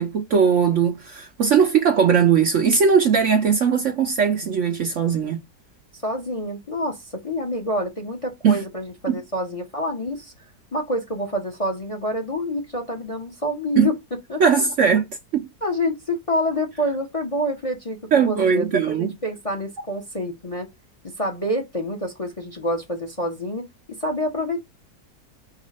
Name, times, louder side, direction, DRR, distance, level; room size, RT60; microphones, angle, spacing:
voice 1, 0.0-5.4 8.4-8.6 9.1-9.2 13.8-13.9 14.4-15.1 15.3-15.5 18.1-19.1, right 6 dB, 55° right, 0.9 m, -19 dB
voice 2, 6.0-10.3 10.7-13.9 14.3-14.4 15.6-20.7 21.2-24.6, left 1 dB, 25° left, 0.8 m, -27 dB
3.9 x 2.5 x 4.1 m
omnidirectional pair, 1.8 m